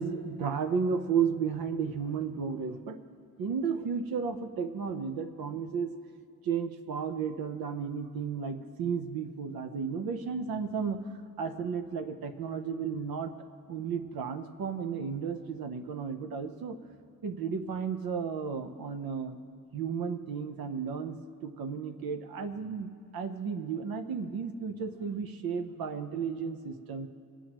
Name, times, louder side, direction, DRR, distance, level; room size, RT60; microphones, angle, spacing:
voice 1, 0.0-3.0 3.4-5.9 6.4-11.0 11.4-13.3 13.7-16.8 17.2-19.4 19.7-27.1, right 6 dB, 70° right, 8 dB, 0.9 m, -33 dB
26.0 x 9.3 x 3.0 m, 2.5 s
wide cardioid pair, 175°, 37 cm